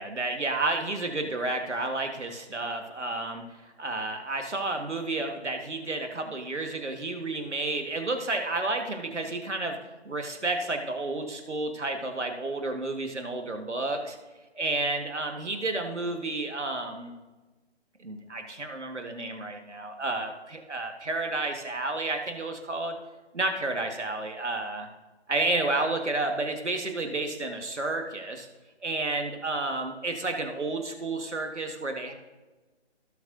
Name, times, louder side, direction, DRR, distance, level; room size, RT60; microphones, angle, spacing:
voice 1, 0.0-9.8 10.0-14.2 14.5-17.1 18.0-22.9 23.3-24.9 25.3-28.5 28.8-32.1, right 2 dB, 80° right, 5 dB, 1.6 m, -31 dB
16.5 x 6.3 x 2.6 m, 1.2 s
figure-of-eight pair, 145°, 34 cm